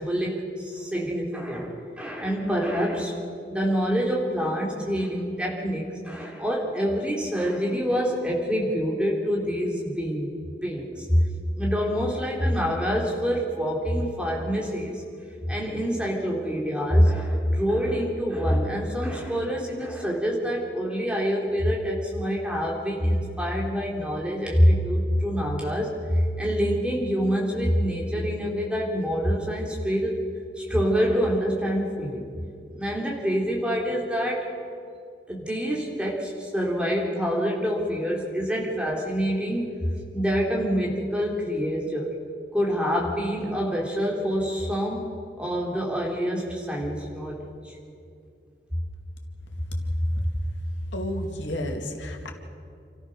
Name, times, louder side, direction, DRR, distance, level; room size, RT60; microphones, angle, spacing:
voice 1, 0.0-3.1 3.5-10.3 10.6-11.3 11.6-15.0 15.5-30.2 30.6-32.3 32.7-34.5 35.3-42.1 42.5-45.1 45.4-47.8, equal, 5° right, -2 dB, 3.3 m, -26 dB
voice 2, 49.8-50.3 50.9-52.3, left 1 dB, 90° left, 3 dB, 2.7 m, -29 dB
29.0 x 14.0 x 6.6 m, 2.4 s
head